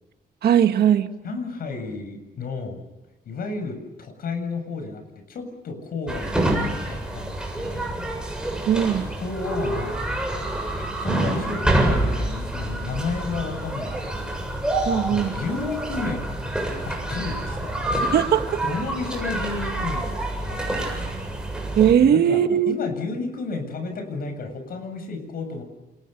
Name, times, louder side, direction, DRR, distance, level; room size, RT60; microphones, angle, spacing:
voice 1, 0.4-1.1 8.7-9.1 14.9-15.3 18.0-18.6 21.8-22.7, right 9 dB, 85° right, 8 dB, 1.8 m, -19 dB
voice 2, 1.2-2.8 3.3-6.4 6.7-8.2 9.2-10.3 10.8-14.4 15.1-16.4 16.8-18.3 18.6-21.1 22.0-25.6, left 4 dB, 65° left, 7 dB, 7.5 m, -32 dB
sound 1, 6.1-21.9, right 1 dB, 5° right, 7.4 m, -27 dB
29.5 x 28.0 x 6.9 m, 1.1 s
wide cardioid pair, 155°, 16 cm